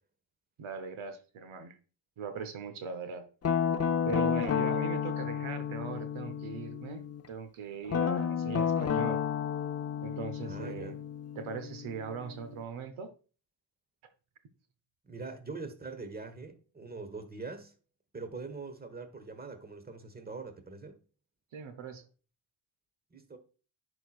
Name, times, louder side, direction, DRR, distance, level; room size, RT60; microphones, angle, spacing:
voice 1, 0.6-1.8 2.2-3.3 4.0-7.0 7.3-9.2 10.0-11.0 11.4-13.1 21.5-22.0, right 5 dB, 80° right, 0.9 m, -40 dB
Guitar, 3.4-7.2 7.9-12.6, left 7 dB, 30° left, 0.6 m, -32 dB
voice 2, 10.4-11.0 15.0-17.7 18.1-21.0 23.1-23.4, right 3 dB, 20° right, 1.1 m, -43 dB
10.0 x 4.4 x 2.3 m
cardioid pair, 60°, 48 cm